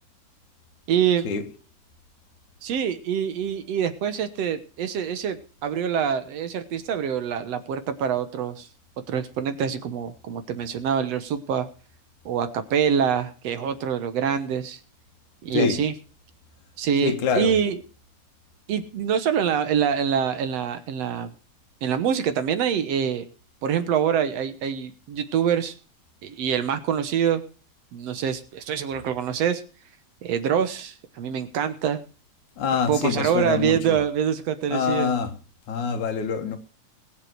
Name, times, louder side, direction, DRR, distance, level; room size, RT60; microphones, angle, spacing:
voice 1, 0.9-1.3 2.6-8.7 9.1-11.7 12.3-14.8 15.4-15.9 16.8-17.8 18.7-21.3 21.8-23.2 23.6-25.7 26.2-27.4 27.9-29.6 30.2-32.0 32.9-35.1, right 8 dB, 65° right, 2.1 m, -25 dB
voice 2, 17.0-17.5 32.6-34.0 34.7-35.3 35.7-36.6, left 6 dB, 80° left, 3.1 m, -25 dB
21.0 x 7.6 x 4.7 m
omnidirectional pair, 3.3 m